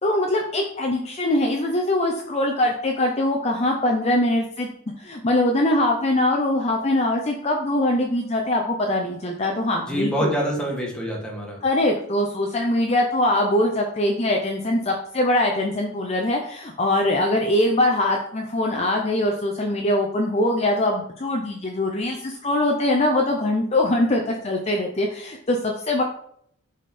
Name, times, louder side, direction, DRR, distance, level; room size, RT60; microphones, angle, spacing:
voice 1, 0.0-4.7 5.0-10.3 11.6-26.0, left 1 dB, 30° left, 1 dB, 0.6 m, -22 dB
voice 2, 9.9-11.6, equal, 5° left, -2 dB, 1.5 m, -26 dB
5.3 x 5.0 x 4.2 m, 0.68 s
head